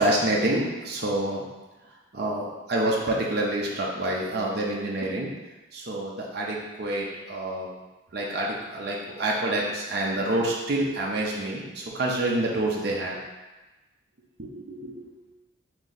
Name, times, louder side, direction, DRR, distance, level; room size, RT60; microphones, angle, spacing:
voice 1, 0.0-1.4 2.1-5.3 5.7-7.7 8.1-13.2 14.4-15.1, right 1 dB, 50° right, -3 dB, 0.5 m, -27 dB
3.1 x 2.6 x 3.9 m, 1.1 s
head